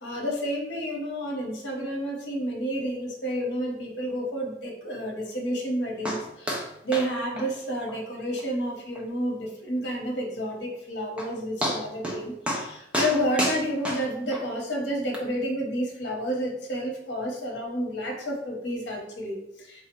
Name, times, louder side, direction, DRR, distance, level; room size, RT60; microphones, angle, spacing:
voice 1, 0.0-6.6 6.8-19.9, equal, 70° left, 0 dB, 0.9 m, -30 dB
sound 1, 6.0-6.2 6.5-6.7 6.9-7.1 7.4-7.5 7.9-8.0 8.4-8.5 8.9-9.0 10.7-10.8 11.2-11.3 11.6-12.2 12.5-12.7 12.9-14.4 15.1-15.2, equal, 5° right, 0.5 m, -29 dB
3.6 x 2.0 x 4.3 m, 0.82 s
head